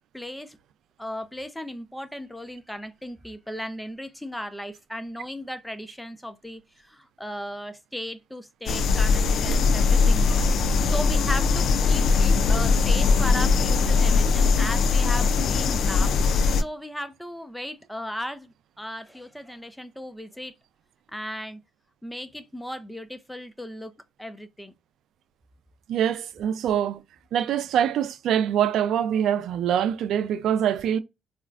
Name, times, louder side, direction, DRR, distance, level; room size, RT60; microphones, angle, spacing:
voice 1, 0.1-0.6 1.0-10.5 10.8-16.2 16.6-20.5 21.1-21.6 22.0-23.9 24.2-24.7, equal, 5° left, 0.6 m, -36 dB
sound 1, 8.7-16.6, left 4 dB, 65° left, 0.3 m, -20 dB
voice 2, 25.9-27.0 27.3-31.0, right 9 dB, 70° right, 0.4 m, -24 dB
4.2 x 2.4 x 2.4 m
cardioid pair, 90°, 0 cm